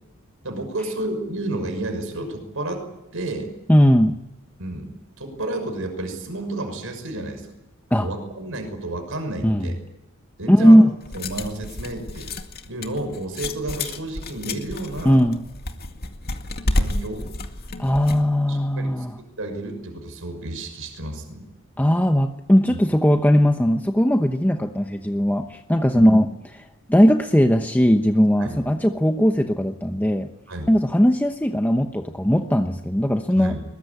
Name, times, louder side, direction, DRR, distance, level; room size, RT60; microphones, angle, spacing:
voice 1, 0.4-2.8 3.1-3.5 4.6-4.9 5.2-7.5 8.0-9.8 10.4-10.8 11.1-12.3 12.7-15.3 16.7-17.3 18.5-21.4 22.7-22.8 25.9-26.1 28.4-28.6 30.5-30.7 33.3-33.6, right 2 dB, 65° right, 6 dB, 6.3 m, -31 dB
voice 2, 3.7-4.2 7.9-8.1 9.4-9.7 10.5-10.9 15.0-15.4 17.8-19.2 21.8-26.3 26.9-30.3 30.7-33.6, equal, 10° left, 5 dB, 1.0 m, -18 dB
sound 1, 11.0-18.3, left 2 dB, 45° left, 2.1 m, -30 dB
22.0 x 21.0 x 9.9 m, 0.94 s
head